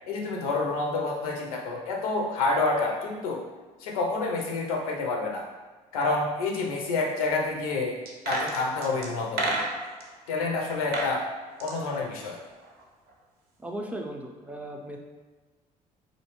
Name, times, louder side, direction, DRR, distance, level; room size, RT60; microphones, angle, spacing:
voice 1, 0.1-3.4 3.8-5.5 5.9-8.0 8.3-9.6 10.3-11.3 11.6-12.4, left 3 dB, 90° left, 0 dB, 0.4 m, -28 dB
sound 1, 8.1-10.1 10.7-11.2 11.4-12.8 13.1-13.2, right 2 dB, 60° right, 0.6 m, -31 dB
voice 2, 13.6-15.0, right 1 dB, 10° right, 1 dB, 0.4 m, -36 dB
2.6 x 2.1 x 2.9 m, 1.3 s
hypercardioid pair, 60°, 18 cm